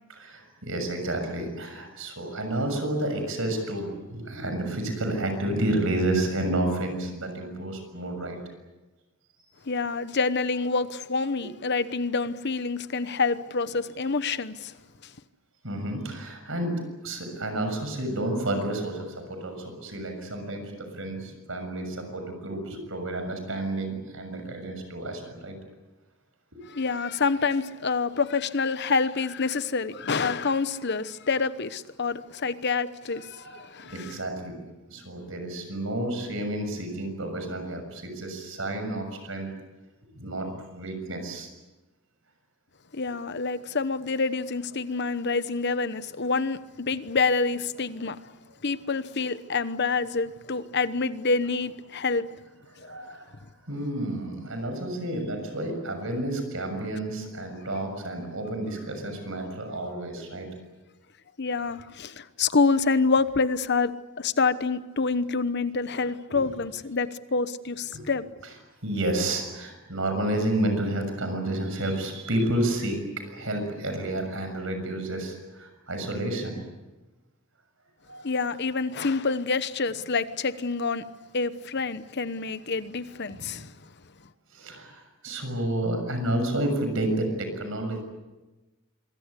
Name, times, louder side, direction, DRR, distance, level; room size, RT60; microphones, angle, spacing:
voice 1, 0.1-8.4 15.6-25.5 33.4-33.6 33.9-34.6 34.9-39.5 40.1-41.5 52.8-53.4 53.7-60.5 66.3-66.4 67.9-68.1 68.8-76.5 78.1-78.3 83.3-83.6 84.5-88.0, right 1 dB, 65° right, 6.8 m, -30 dB
voice 2, 9.7-14.7 26.7-34.2 42.9-48.2 48.6-52.2 52.8-53.0 61.4-63.9 64.2-68.2 78.2-81.0 81.3-83.7, left 4 dB, 50° left, 1.0 m, -27 dB
26.0 x 22.5 x 8.4 m
head